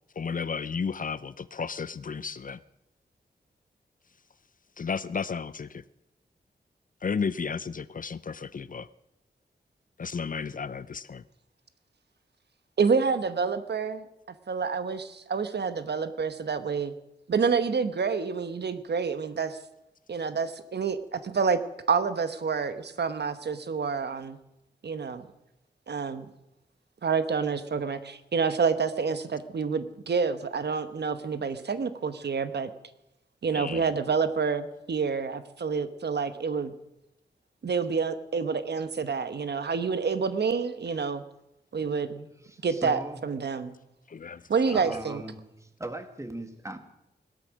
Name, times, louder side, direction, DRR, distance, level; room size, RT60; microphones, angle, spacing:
voice 1, 0.2-2.6 4.8-5.8 7.0-8.9 10.0-11.2 33.5-33.8 44.1-44.4, left 5 dB, 50° left, 0.5 m, -33 dB
voice 2, 12.8-14.0 14.5-16.9 17.3-19.6 20.1-21.6 21.9-24.4 24.8-25.3 25.9-26.2 27.0-32.7 33.4-36.7 37.6-41.2 41.7-42.3 42.6-43.7 44.5-45.2, right 5 dB, 70° right, 1.1 m, -28 dB
voice 3, 42.4-43.2 44.3-44.5 44.7-46.8, right 1 dB, 15° right, 1.8 m, -39 dB
17.5 x 12.5 x 6.3 m
wide cardioid pair, 80°, 18 cm